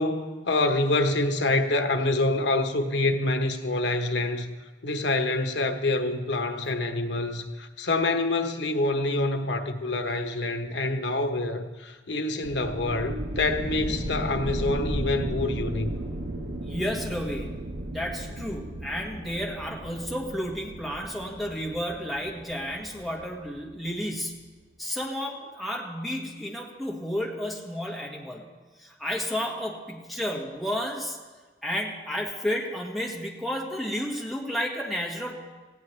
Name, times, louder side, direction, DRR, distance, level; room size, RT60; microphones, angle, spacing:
voice 1, 0.0-4.5 4.8-15.9, left 2 dB, 80° left, 6 dB, 1.1 m, -26 dB
sound 1, 12.4-23.9, right 1 dB, 85° right, 1.2 m, -35 dB
voice 2, 16.6-24.4 24.8-28.4 28.8-31.2 31.6-35.4, equal, ahead, -3 dB, 1.8 m, -32 dB
18.0 x 16.0 x 3.3 m, 1.3 s
head